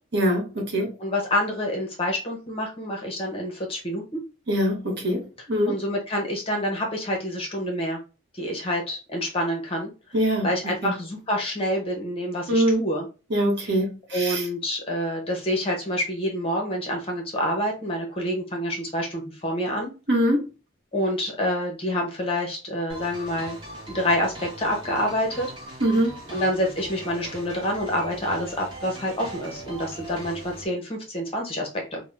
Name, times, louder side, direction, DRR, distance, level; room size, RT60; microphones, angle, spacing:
voice 1, 0.1-0.9 4.5-5.2 5.5-5.7 10.1-11.0 12.5-12.8 13.3-14.5 20.1-20.4 25.8-26.1, equal, 55° right, 0.8 m, -23 dB
voice 2, 1.0-4.2 5.7-8.0 8.3-9.9 10.4-13.1 13.6-13.7 14.1-19.9 20.9-23.6 23.9-25.5 26.3-32.0, equal, 25° left, 0.7 m, -27 dB
sound 1, 22.9-30.6, right 1 dB, 25° right, 0.9 m, -40 dB
2.5 x 2.1 x 3.2 m
head